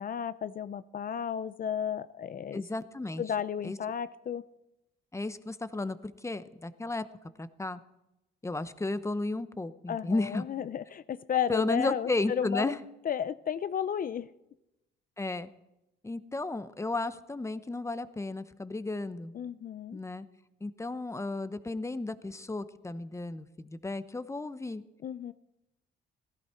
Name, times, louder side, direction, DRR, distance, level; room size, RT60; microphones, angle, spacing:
voice 1, 0.0-2.6 3.2-4.5 9.9-12.7 13.0-14.3 19.3-20.0 25.0-25.3, left 8 dB, 45° left, 14 dB, 0.5 m, -33 dB
voice 2, 2.5-3.2 3.6-3.8 5.1-7.0 7.4-7.8 8.4-10.4 11.5-12.8 15.2-15.5 16.0-19.3 19.9-20.3 20.6-24.8, left 2 dB, 15° left, 13 dB, 0.8 m, -33 dB
17.0 x 14.5 x 4.5 m, 0.91 s
cardioid pair, 90°, 20 cm